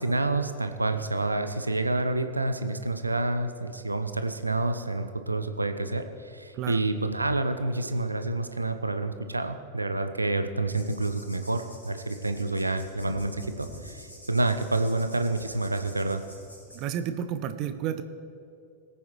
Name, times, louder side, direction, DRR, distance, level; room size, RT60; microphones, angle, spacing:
voice 1, 0.0-16.2, right 2 dB, 85° right, 8 dB, 0.7 m, -28 dB
sound 1, 10.7-16.8, equal, 80° left, 3.5 m, -47 dB
voice 2, 16.7-18.0, right 9 dB, 40° right, 11 dB, 0.7 m, -31 dB
21.0 x 9.1 x 3.1 m, 2.4 s
figure-of-eight pair, 90°, 0 cm